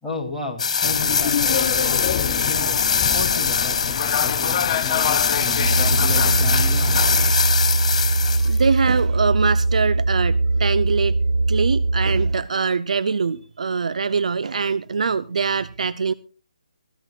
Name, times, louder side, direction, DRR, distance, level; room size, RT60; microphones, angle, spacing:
voice 1, 0.0-2.8 3.1-6.9, left 2 dB, 5° left, 2.8 m, -33 dB
sound 1, 0.6-8.6, left 6 dB, 50° left, 3.6 m, -22 dB
sound 2, 0.8-7.3, left 9 dB, 30° left, 0.6 m, -27 dB
sound 3, 5.5-12.4, right 2 dB, 40° right, 6.2 m, -21 dB
voice 2, 8.4-11.2 11.5-16.1, right 5 dB, 60° right, 0.6 m, -23 dB
23.5 x 15.0 x 2.4 m
figure-of-eight pair, 155°, 4 cm